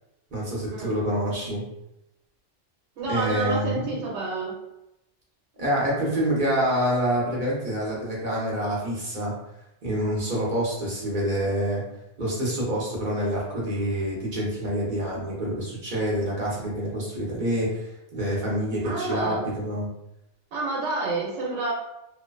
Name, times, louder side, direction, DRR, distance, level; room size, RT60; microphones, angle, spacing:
voice 1, 0.3-1.6 3.1-3.9 5.6-9.3 9.8-11.8 12.2-19.9, right 1 dB, 50° right, -5 dB, 0.8 m, -27 dB
voice 2, 3.0-4.6 18.8-19.4 20.5-21.7, right 3 dB, 85° right, -3 dB, 0.9 m, -29 dB
2.6 x 2.1 x 2.3 m, 0.89 s
omnidirectional pair, 1.2 m